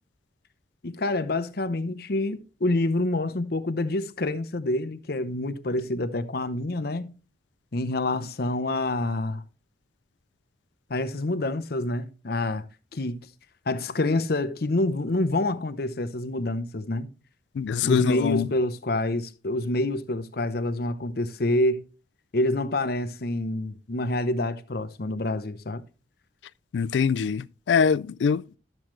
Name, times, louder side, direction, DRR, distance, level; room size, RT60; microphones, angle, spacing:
voice 1, 0.8-7.1 7.7-9.4 10.9-12.7 12.9-13.2 13.7-17.1 17.8-21.8 22.3-25.8, left 2 dB, 55° left, 0.8 m, -27 dB
voice 2, 17.6-18.5 26.7-28.6, left 6 dB, 75° left, 0.3 m, -23 dB
12.0 x 7.4 x 3.2 m
head